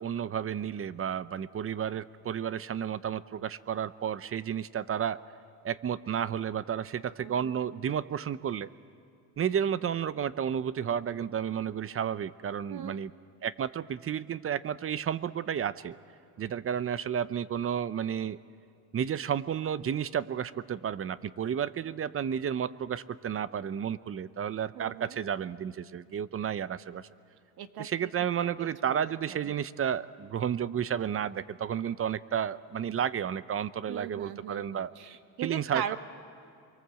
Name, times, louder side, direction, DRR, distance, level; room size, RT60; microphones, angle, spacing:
voice 1, 0.0-5.2 5.6-8.7 9.4-13.1 13.4-16.0 16.4-18.4 18.9-27.1 27.8-34.9 35.4-36.0, right 8 dB, 30° right, 16 dB, 0.7 m, -32 dB
voice 2, 7.2-7.6 12.7-13.0 24.8-25.2 27.6-27.9 28.4-29.1 33.9-36.0, right 9 dB, 60° right, 9 dB, 1.6 m, -39 dB
26.0 x 23.5 x 7.7 m, 2.5 s
supercardioid pair, 105°, 43 cm